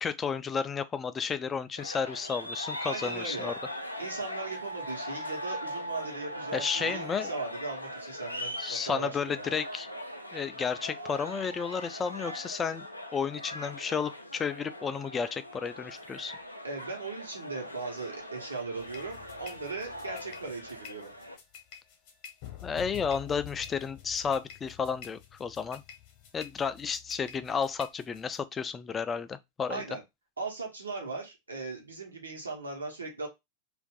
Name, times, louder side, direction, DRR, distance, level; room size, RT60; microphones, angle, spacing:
voice 1, 0.0-3.5 6.5-7.3 8.6-9.9 10.3-12.9 13.1-16.4 22.6-25.8 26.3-29.8, left 6 dB, 20° left, 0.3 m, -32 dB
sound 1, 1.8-21.4, equal, 85° left, 0.4 m, -40 dB
voice 2, 2.9-3.5 4.0-9.4 16.6-21.1 29.7-30.0 30.4-33.3, right 3 dB, 75° right, 1.0 m, -38 dB
sound 2, 18.8-28.4, left 10 dB, 45° left, 0.9 m, -48 dB
2.6 x 2.5 x 3.6 m
figure-of-eight pair, 90°, 0 cm